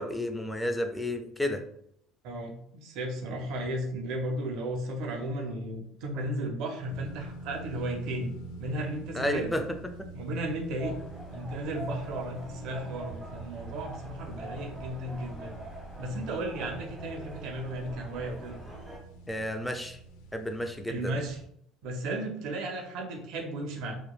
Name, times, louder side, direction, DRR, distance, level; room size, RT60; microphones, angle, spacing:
voice 1, 0.0-1.6 9.1-9.6 10.0-10.1 19.3-20.0 20.3-21.2, left 1 dB, 5° left, 6 dB, 0.4 m, -31 dB
voice 2, 2.2-8.3 8.6-9.5 10.1-10.9 11.3-15.6 16.0-18.6 20.9-21.4 21.8-24.0, right 1 dB, 70° right, 3 dB, 0.5 m, -34 dB
sound 1, 6.9-21.5, right 2 dB, 80° left, 0.3 m, -47 dB
sound 2, 10.8-19.0, right 2 dB, 10° right, 0.8 m, -43 dB
2.9 x 2.2 x 2.2 m, 0.70 s
supercardioid pair, 95°, 0 cm